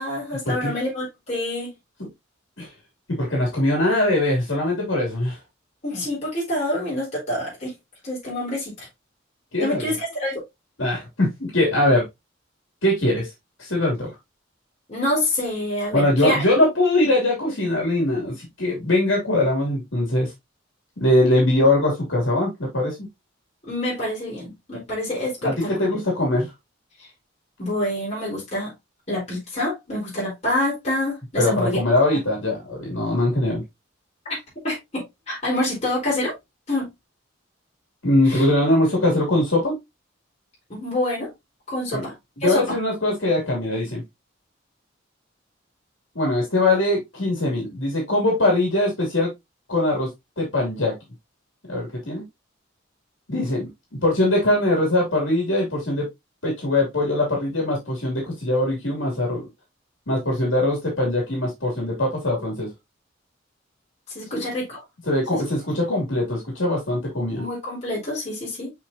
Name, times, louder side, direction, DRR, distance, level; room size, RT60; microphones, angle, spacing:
voice 1, 0.0-1.7 5.8-7.7 8.0-8.9 9.6-10.4 14.9-16.4 23.6-25.7 27.6-28.7 29.1-31.8 34.2-34.4 34.6-36.3 36.7-36.9 38.3-38.4 40.7-41.3 41.7-42.1 42.4-42.8 64.1-64.8 65.3-65.7 67.3-68.7, left 1 dB, 35° left, 4.4 m, -27 dB
voice 2, 3.1-5.4 9.5-9.9 10.8-12.0 12.8-13.3 13.6-14.2 15.9-20.3 21.0-23.0 25.4-26.5 31.4-33.6 38.0-39.8 41.9-42.0 42.4-44.0 46.1-49.3 49.7-50.1 50.4-50.9 51.7-52.2 53.3-53.7 54.0-56.1 56.4-59.4 60.1-62.7 64.3-64.4 65.1-67.4, left 1 dB, 75° left, 3.0 m, -22 dB
6.7 x 5.4 x 2.8 m
head